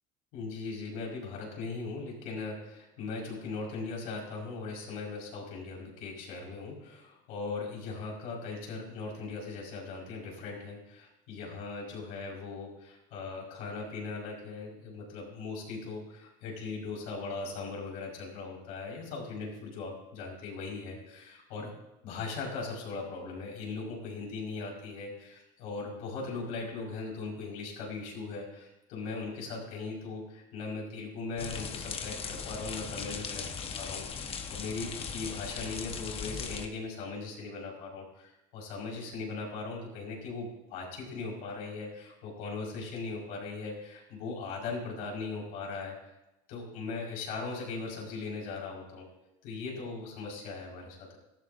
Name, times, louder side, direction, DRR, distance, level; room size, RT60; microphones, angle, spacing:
voice 1, 0.3-21.7 22.0-46.0 46.5-49.1 49.4-51.2, left 4 dB, 70° left, -2 dB, 5.4 m, -39 dB
sound 1, 31.4-36.7, left 6 dB, 40° left, 1.4 m, -38 dB
18.0 x 13.5 x 2.7 m, 0.95 s
supercardioid pair, 95°, 15 cm